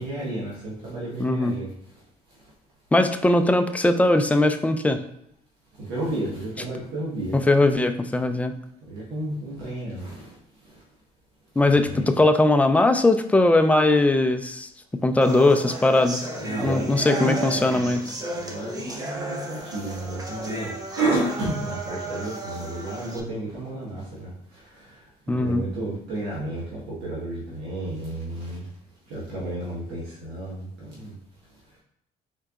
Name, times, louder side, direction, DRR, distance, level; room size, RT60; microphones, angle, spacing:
voice 1, 0.0-1.7 5.8-7.3 8.9-10.3 11.9-12.1 16.4-18.0 18.3-25.0 25.3-28.6 29.1-31.1, right 2 dB, 90° right, -6 dB, 1.4 m, -31 dB
voice 2, 1.2-1.5 2.9-5.0 7.3-8.5 11.6-14.7 15.0-16.2 16.6-18.0 25.3-25.6, left 2 dB, 10° left, 7 dB, 0.3 m, -20 dB
sound 1, 15.2-23.2, right 1 dB, 20° right, 0.7 m, -34 dB
4.4 x 3.8 x 2.4 m, 0.75 s
cardioid pair, 110°, 17 cm